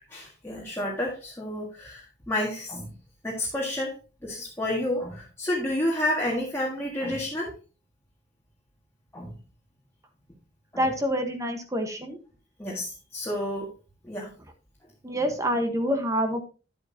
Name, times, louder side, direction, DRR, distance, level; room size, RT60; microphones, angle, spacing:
voice 1, 0.1-2.9 3.2-4.0 4.2-7.5 9.1-9.3 10.7-10.9 12.6-13.7 14.0-14.3, left 1 dB, 15° left, -3 dB, 1.9 m, -30 dB
voice 2, 10.7-12.2 15.0-16.4, equal, 15° right, 6 dB, 1.2 m, -27 dB
10.5 x 7.9 x 2.8 m, 0.33 s
head